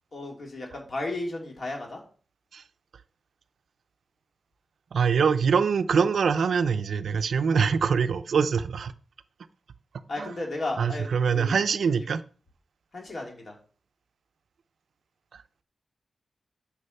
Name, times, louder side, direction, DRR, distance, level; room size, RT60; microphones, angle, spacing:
voice 1, 0.1-2.0 10.1-11.6 12.0-12.1 12.9-13.5, left 2 dB, 45° left, 3.1 m, -34 dB
voice 2, 4.9-8.9 10.2-10.3 10.8-12.2 15.3-15.4, right 6 dB, 80° right, 0.5 m, -24 dB
9.8 x 5.0 x 6.7 m
wide cardioid pair, 155°, 0 cm